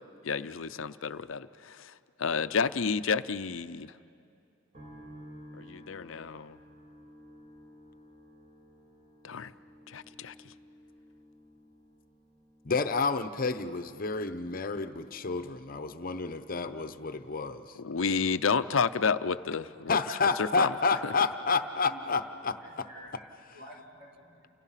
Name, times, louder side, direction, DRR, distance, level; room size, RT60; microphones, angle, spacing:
voice 1, 0.2-1.9 2.2-3.9 5.6-6.6 9.2-9.5 9.9-10.3 17.8-20.8 21.0-21.1, left 5 dB, 70° left, 13 dB, 0.6 m, -30 dB
sound 1, 4.7-20.0 20.3-21.1, equal, 40° right, 7.4 m, -56 dB
voice 2, 12.6-17.6 19.9-22.9, left 4 dB, 45° left, 9 dB, 0.8 m, -30 dB
voice 3, 21.9-22.2 22.6-24.5, equal, 55° right, 1 dB, 5.2 m, -51 dB
30.0 x 28.5 x 5.8 m, 2.6 s
head